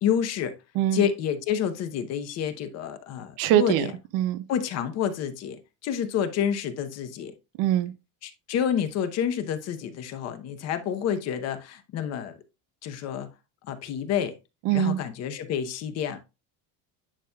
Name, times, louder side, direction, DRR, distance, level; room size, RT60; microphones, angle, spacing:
voice 1, 0.0-0.6 0.9-3.9 4.5-7.3 8.2-12.4 12.8-13.3 13.7-14.3 14.7-16.2, left 8 dB, 35° left, 0.8 m, -29 dB
voice 2, 3.4-3.8 4.1-4.4 7.6-7.9 14.7-15.0, right 13 dB, 50° right, 0.5 m, -23 dB
9.8 x 5.2 x 2.3 m
cardioid pair, 180°, 43 cm